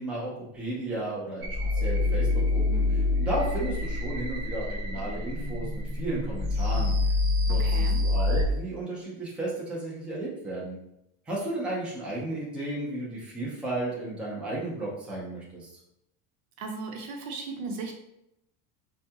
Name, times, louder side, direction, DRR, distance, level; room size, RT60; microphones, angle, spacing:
voice 1, 0.0-1.6 1.8-6.9 7.5-10.8 11.3-15.7, right 2 dB, 5° right, -5 dB, 0.5 m, -34 dB
sound 1, 1.4-8.4, left 2 dB, 40° right, 1.2 m, -26 dB
voice 2, 7.6-8.0 16.6-17.9, right 4 dB, 80° right, 2 dB, 0.9 m, -36 dB
4.5 x 2.3 x 2.7 m, 0.81 s
cardioid pair, 160°, 41 cm